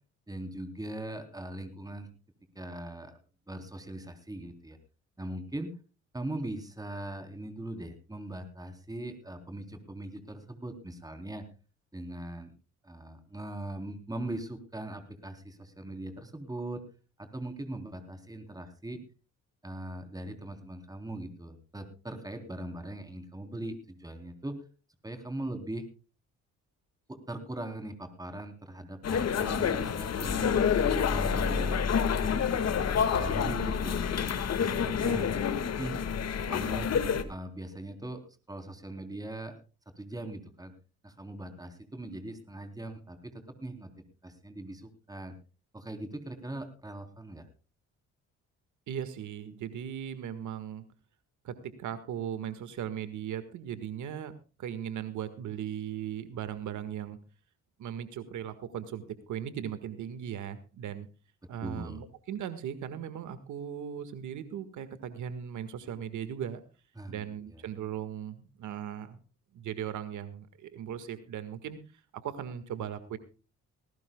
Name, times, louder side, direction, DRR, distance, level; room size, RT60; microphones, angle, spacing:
voice 1, 0.3-2.1 2.6-3.2 3.5-4.8 5.2-5.7 6.1-11.5 11.9-12.5 12.8-16.8 17.2-19.0 19.6-24.6 25.0-25.9 27.1-30.6 31.1-32.6 33.2-34.1 34.6-35.4 35.6-35.9 36.5-36.9 37.3-39.6 40.0-40.7 41.0-43.9 44.2-45.3 45.7-47.5 61.6-62.0 67.0-67.6, right 1 dB, 10° right, 7 dB, 3.6 m, -40 dB
sound 1, 29.0-37.2, left 7 dB, 55° left, 1.9 m, -28 dB
voice 2, 34.8-35.2 48.9-50.8 51.4-54.3 54.6-57.2 57.8-59.0 59.3-61.1 61.5-66.6 67.1-69.2 69.5-71.8 72.1-73.2, right 9 dB, 75° right, 11 dB, 1.7 m, -38 dB
19.5 x 18.0 x 2.3 m, 0.33 s
cardioid pair, 90°, 30 cm